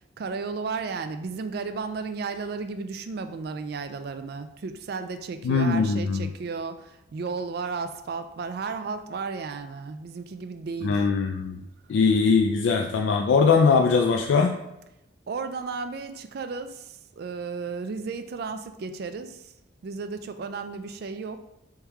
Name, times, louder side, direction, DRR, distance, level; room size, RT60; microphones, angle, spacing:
voice 1, 0.0-11.0 15.3-19.5 19.8-21.4, right 4 dB, 55° right, 9 dB, 0.3 m, -34 dB
voice 2, 5.4-6.2 10.8-11.6 11.9-14.6, left 5 dB, 75° left, 2 dB, 0.3 m, -21 dB
3.5 x 3.0 x 4.5 m, 0.87 s
head